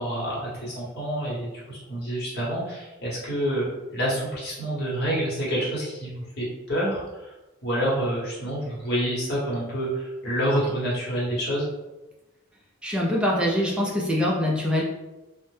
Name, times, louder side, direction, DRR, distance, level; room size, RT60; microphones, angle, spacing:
voice 1, 0.0-3.7 3.9-7.3 7.6-11.7, right 1 dB, 50° left, -6 dB, 1.0 m, -28 dB
voice 2, 12.8-14.8, left 1 dB, 5° right, -4 dB, 0.4 m, -24 dB
2.1 x 2.0 x 3.1 m, 1.1 s
head